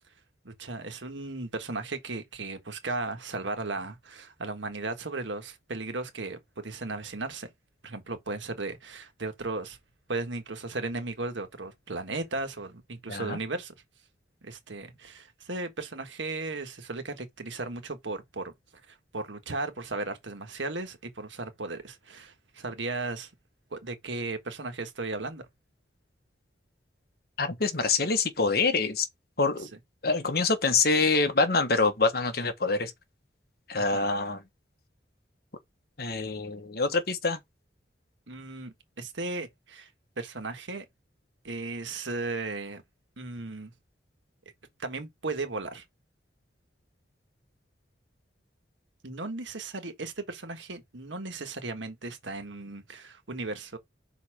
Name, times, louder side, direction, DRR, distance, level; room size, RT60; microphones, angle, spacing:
voice 1, 0.4-7.5 7.8-9.8 10.1-13.7 14.4-18.5 18.9-23.3 23.7-25.5 29.6-29.7 33.8-34.1 38.3-39.9 40.2-40.9 41.4-42.8 43.2-43.7 44.8-45.8 49.0-53.8, right 3 dB, 85° right, 1.5 m, -36 dB
voice 2, 27.4-29.1 29.4-29.7 30.0-32.9 33.7-34.4 36.0-37.4, left 4 dB, 55° left, 1.3 m, -25 dB
5.6 x 4.2 x 4.9 m
head